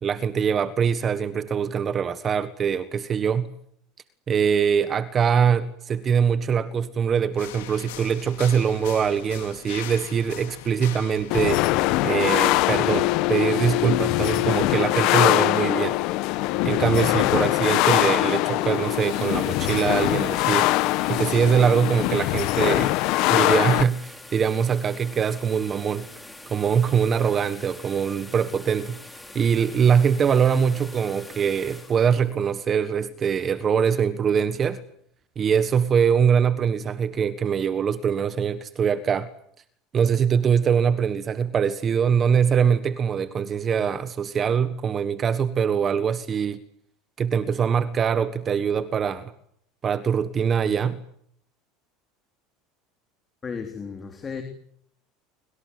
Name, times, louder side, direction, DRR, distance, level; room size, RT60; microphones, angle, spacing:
voice 1, 0.0-3.5 4.3-11.6 12.0-16.0 16.6-20.7 21.1-22.9 23.3-26.1 26.5-29.0 29.3-34.8 35.3-39.3 39.9-46.6 47.2-49.3 49.8-51.0, right 7 dB, 30° right, 1.5 m, -23 dB
sound 1, 7.4-12.4, left 14 dB, 85° left, 2.4 m, -40 dB
sound 2, 11.3-23.8, left 19 dB, 60° left, 1.1 m, -22 dB
sound 3, 18.5-33.4, left 2 dB, 5° left, 4.6 m, -44 dB
voice 2, 53.4-54.4, left 5 dB, 25° left, 3.4 m, -34 dB
25.0 x 25.0 x 8.0 m
supercardioid pair, 120°, 0 cm